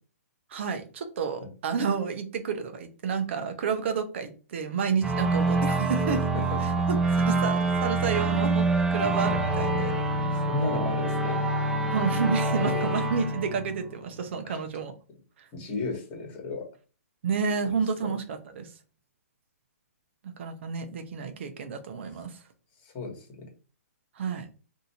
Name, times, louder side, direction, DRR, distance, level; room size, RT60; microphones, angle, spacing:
voice 1, 0.5-6.2 6.6-9.9 11.9-14.9 15.4-15.5 17.2-18.7 20.4-22.4 24.2-24.5, right 5 dB, 50° right, 8 dB, 0.7 m, -30 dB
sound 1, 5.0-14.3, right 2 dB, 5° right, 0.5 m, -26 dB
voice 2, 6.3-6.8 10.2-11.4 12.5-12.9 14.4-14.6 15.5-16.7 17.6-18.1 22.8-23.5, left 3 dB, 25° left, 0 dB, 1.4 m, -35 dB
2.7 x 2.5 x 4.2 m, 0.36 s
hypercardioid pair, 150°, 8 cm